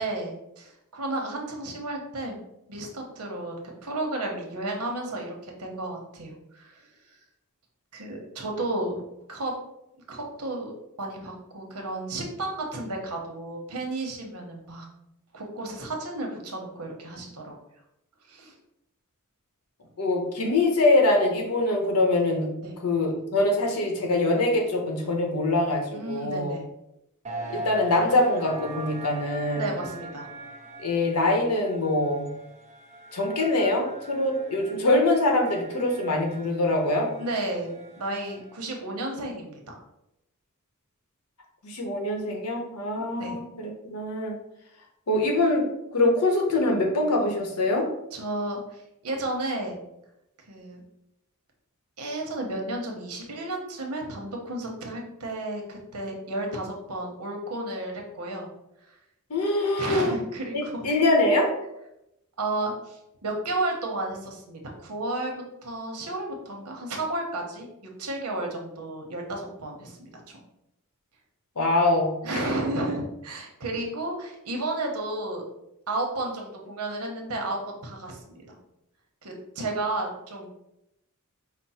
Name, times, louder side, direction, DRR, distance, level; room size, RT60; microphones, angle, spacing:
voice 1, 0.0-2.4 2.7-6.9 7.9-9.0 9.3-9.5 10.1-14.9 15.3-17.6 18.2-18.5 22.6-22.8 25.9-26.7 29.5-30.3 37.2-39.8 43.2-43.4 48.1-49.7 50.5-50.8 52.0-58.5 58.8-59.0 59.8-60.8 62.4-65.3 65.6-70.4 72.2-75.4 75.9-78.6 79.2-80.5, right 2 dB, 85° right, 1 dB, 1.0 m, -32 dB
voice 2, 20.0-22.5 22.8-26.6 27.5-29.7 30.8-32.3 33.1-37.1 41.6-44.4 45.1-45.6 45.9-47.9 59.3-60.1 60.8-61.5 71.6-72.4, left 2 dB, 85° left, 1 dB, 1.0 m, -24 dB
sound 1, 27.2-38.7, right 1 dB, 30° right, 0.7 m, -41 dB
5.2 x 2.1 x 4.2 m, 0.85 s
head